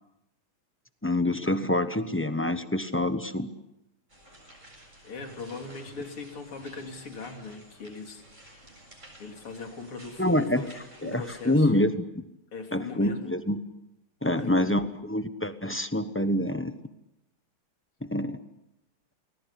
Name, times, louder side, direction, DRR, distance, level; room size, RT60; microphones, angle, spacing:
voice 1, 1.0-3.5 10.2-10.6 11.0-11.9 12.7-13.6 14.2-16.7 18.1-18.4, left 1 dB, 15° left, 10 dB, 0.4 m, -26 dB
sound 1, 4.1-11.6, right 1 dB, 35° right, 7.7 m, -52 dB
voice 2, 5.0-8.7 9.2-11.7 12.5-13.3 14.2-14.9, left 4 dB, 80° left, 4 dB, 3.9 m, -40 dB
30.0 x 21.0 x 8.3 m, 0.88 s
omnidirectional pair, 2.4 m